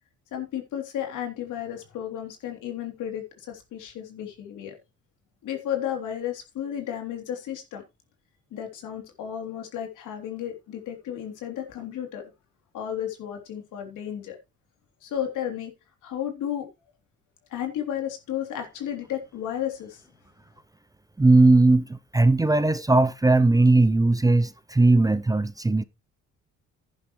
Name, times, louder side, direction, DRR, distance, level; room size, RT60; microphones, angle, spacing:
voice 1, 0.3-4.7 5.4-7.8 8.5-12.2 12.7-14.4 15.0-15.7 16.0-16.7 17.5-20.0, left 10 dB, 85° left, 3.3 m, -33 dB
voice 2, 21.2-25.8, right 2 dB, 10° right, 0.6 m, -19 dB
11.0 x 10.5 x 3.2 m
cardioid pair, 90°, 30 cm